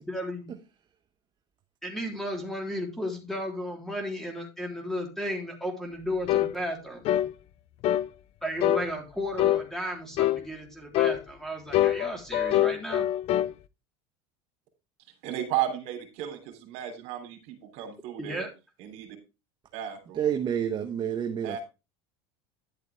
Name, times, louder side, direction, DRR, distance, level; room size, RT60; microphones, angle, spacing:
voice 1, 0.1-0.5 1.8-7.0 8.4-13.1 18.2-18.5, equal, 5° left, 3.5 m, -34 dB
sound 1, 6.3-6.5 7.0-7.3 7.8-8.1 8.6-8.9 9.4-9.6 10.2-10.4 10.9-11.2 11.7-13.5, left 13 dB, 45° left, 0.6 m, -24 dB
voice 2, 15.2-18.5 18.8-19.2 19.7-20.2 21.4-21.6, right 11 dB, 65° right, 3.2 m, -34 dB
voice 3, 20.1-21.6, right 9 dB, 30° right, 1.1 m, -29 dB
11.0 x 7.8 x 3.3 m
supercardioid pair, 120°, 14 cm